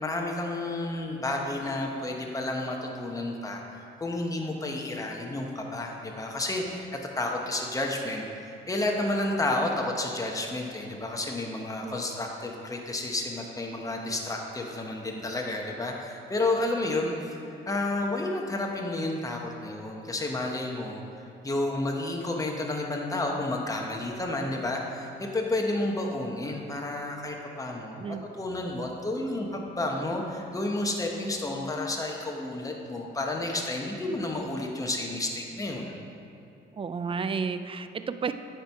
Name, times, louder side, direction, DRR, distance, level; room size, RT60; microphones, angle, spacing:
voice 1, 0.0-6.9 7.2-8.2 8.7-21.0 21.4-36.0, left 2 dB, 15° left, 0 dB, 1.0 m, -31 dB
voice 2, 36.7-38.3, right 5 dB, 25° right, 10 dB, 0.4 m, -32 dB
9.2 x 4.5 x 4.6 m, 2.7 s
cardioid pair, 90°, 20 cm